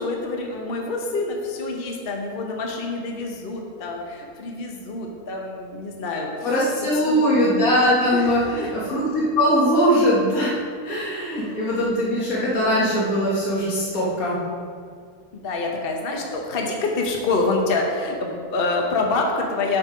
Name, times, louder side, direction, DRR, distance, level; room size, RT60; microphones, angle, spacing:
voice 1, 0.0-6.5 7.0-7.3 8.1-8.7 11.3-12.1 15.3-19.8, left 3 dB, 40° left, 1 dB, 1.1 m, -27 dB
voice 2, 6.4-10.6 10.8-14.4, equal, 60° left, -6 dB, 2.1 m, -21 dB
8.7 x 6.1 x 5.0 m, 2.2 s
omnidirectional pair, 1.7 m